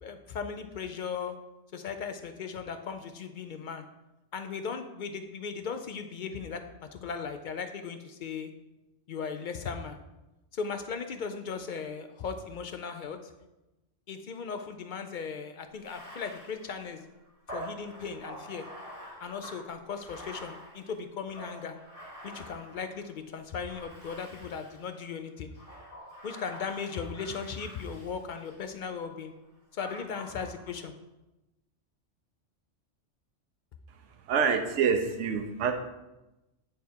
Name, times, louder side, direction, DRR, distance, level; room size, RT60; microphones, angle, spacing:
voice 1, 0.0-1.4 1.7-3.8 4.3-8.5 9.1-10.0 10.5-13.3 14.1-17.0 17.5-18.7 19.2-21.8 22.2-25.5 26.2-29.3 29.7-30.9, left 6 dB, 60° left, 7 dB, 0.5 m, -37 dB
Bathtub (filling or washing), 15.7-23.1 23.6-24.9 25.5-28.7 29.8-30.8, right 1 dB, 15° left, 2.0 m, -46 dB
voice 2, 34.3-35.7, right 6 dB, 75° right, 5 dB, 1.0 m, -26 dB
8.8 x 3.6 x 4.3 m, 0.99 s
omnidirectional pair, 1.3 m